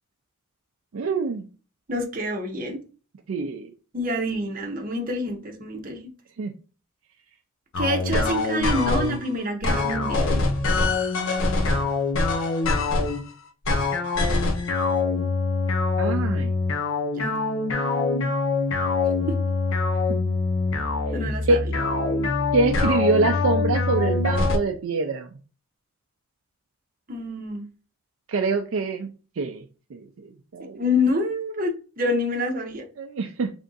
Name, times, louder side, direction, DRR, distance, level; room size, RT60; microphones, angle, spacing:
voice 1, 0.9-1.5 3.3-3.7 6.4-6.5 16.0-16.5 21.5-21.6 22.5-25.3 28.3-29.1 29.4-29.6 29.9-30.0 30.5-30.8 33.0-33.5, right 3 dB, 65° right, 4 dB, 0.4 m, -24 dB
voice 2, 1.9-2.8 3.9-6.1 7.8-10.3 17.1-17.3 21.1-21.6 27.1-27.7 30.7-32.8, left 1 dB, 40° right, 3 dB, 0.8 m, -27 dB
sound 1, 7.7-9.2 9.6-13.2 13.6-24.6, left 3 dB, 60° left, 0.6 m, -24 dB
3.4 x 2.6 x 3.8 m, 0.36 s
head